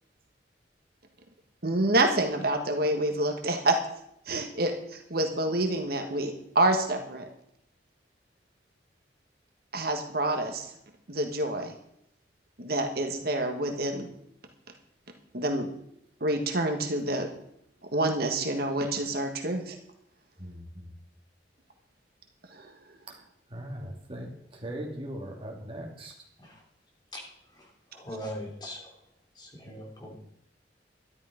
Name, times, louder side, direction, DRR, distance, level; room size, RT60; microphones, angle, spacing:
voice 1, 1.6-3.8 4.3-7.3 9.7-10.7 11.1-11.8 12.6-14.1 15.3-15.7 16.2-17.3 17.9-19.7 22.5-22.7, right 1 dB, 60° right, 4 dB, 1.6 m, -27 dB
voice 2, 20.4-20.9 23.1-23.2 23.5-26.1, right 1 dB, 30° right, 0 dB, 2.7 m, -39 dB
voice 3, 27.9-28.9 29.4-30.2, equal, 25° left, 0 dB, 3.1 m, -40 dB
12.5 x 11.0 x 5.2 m, 0.74 s
head